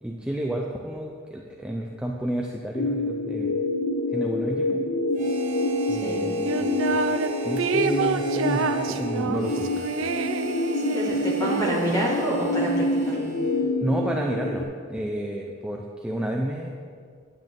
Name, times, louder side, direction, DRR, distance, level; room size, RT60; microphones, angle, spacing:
voice 1, 0.0-3.6 4.1-4.8 5.9-6.9 7.4-9.8 13.8-16.7, right 1 dB, 5° right, 0 dB, 0.5 m, -30 dB
sound 1, 2.7-14.6, left 1 dB, 55° left, 0.6 m, -27 dB
Harmonica, 5.1-13.8, right 5 dB, 40° right, 1.3 m, -40 dB
voice 2, 5.9-6.3 10.7-13.4, right 1 dB, 20° left, -5 dB, 2.1 m, -28 dB
sound 2, 6.4-7.3 7.6-12.2, right 4 dB, 85° right, 0.5 m, -28 dB
9.5 x 9.4 x 3.8 m, 2.1 s
head